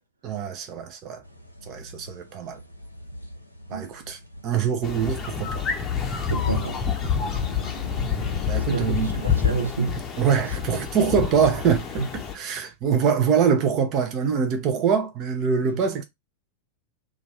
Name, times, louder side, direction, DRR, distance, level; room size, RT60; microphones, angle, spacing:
voice 1, 0.2-1.2 1.6-2.6 3.7-5.6 7.2-7.4 8.5-9.1 10.2-16.0, right 6 dB, 35° right, 0.7 m, -24 dB
sound 1, 1.2-9.7, left 1 dB, 85° left, 0.6 m, -42 dB
sound 2, 4.8-12.4, left 7 dB, 25° left, 0.7 m, -27 dB
voice 2, 6.3-6.8 8.7-10.0 15.6-15.7, right 4 dB, 80° right, 0.6 m, -28 dB
2.5 x 2.5 x 3.2 m
figure-of-eight pair, 90°, 0 cm